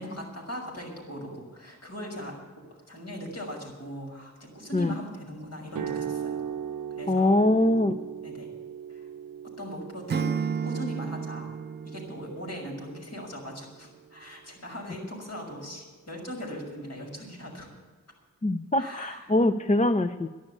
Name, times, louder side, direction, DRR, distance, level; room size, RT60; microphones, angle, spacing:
voice 1, 0.0-6.4 7.0-7.3 8.2-8.5 8.9-9.1 9.6-10.3 10.6-11.5 11.8-17.7 18.8-19.2, equal, 55° left, 0 dB, 6.2 m, -39 dB
sound 1, 5.7-13.7, right 8 dB, 85° right, 0.8 m, -39 dB
voice 2, 7.1-7.9 18.4-20.3, left 1 dB, 25° left, 9 dB, 0.6 m, -23 dB
Acoustic guitar / Strum, 10.1-13.2, right 6 dB, 35° right, 0.4 m, -33 dB
12.5 x 11.0 x 8.2 m, 1.4 s
cardioid pair, 75°, 31 cm